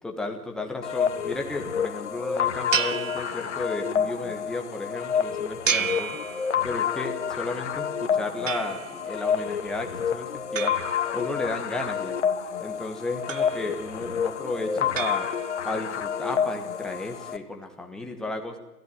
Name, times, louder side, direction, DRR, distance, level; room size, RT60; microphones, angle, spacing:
voice 1, 0.0-6.2 6.6-10.8 11.1-12.2 12.6-15.3 15.6-18.6, left 2 dB, ahead, 3 dB, 1.2 m, -33 dB
sound 1, 0.8-17.4, left 7 dB, 50° left, 1.5 m, -29 dB
sound 2, 2.7-3.9 5.7-6.9 8.5-9.2 10.6-11.7 13.3-14.0 15.0-15.8, right 7 dB, 55° right, 1.5 m, -32 dB
28.0 x 15.0 x 9.5 m, 1.0 s
figure-of-eight pair, 140°, 46 cm